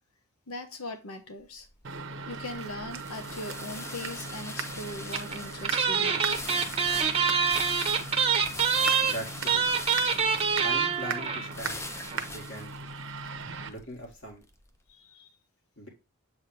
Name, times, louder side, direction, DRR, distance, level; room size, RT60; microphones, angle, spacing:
voice 1, 0.5-1.7 2.2-6.4 14.9-15.3, left 2 dB, 80° left, 1.1 m, -40 dB
sound 1, 1.4-14.7, left 2 dB, 10° left, 0.4 m, -43 dB
sound 2, 1.8-13.7, right 4 dB, 60° right, 0.7 m, -39 dB
sound 3, 5.1-5.4 5.6-11.5 11.8-11.9 12.1-12.2, right 6 dB, 25° right, 0.7 m, -25 dB
voice 2, 9.0-9.7 10.6-11.9 12.1-12.7 13.7-14.4 15.8-15.9, right 1 dB, 55° left, 2.3 m, -40 dB
7.4 x 4.1 x 3.3 m
head